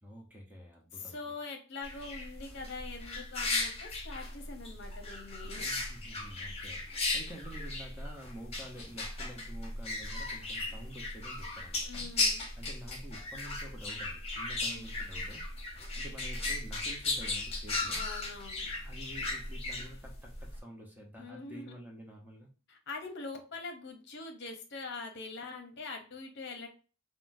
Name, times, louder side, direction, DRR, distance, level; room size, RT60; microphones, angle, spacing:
voice 1, 0.0-1.3 5.5-12.1 12.6-15.4 16.0-18.0 18.8-22.5, right 1 dB, 10° right, -1 dB, 0.6 m, -49 dB
voice 2, 0.9-5.7 11.8-12.5 14.6-14.8 17.9-18.7 21.2-21.7 22.7-26.7, left 3 dB, 60° left, 4 dB, 0.7 m, -43 dB
sound 1, 1.8-20.6, left 2 dB, 30° left, 0.7 m, -36 dB
3.7 x 2.1 x 2.5 m, 0.35 s
head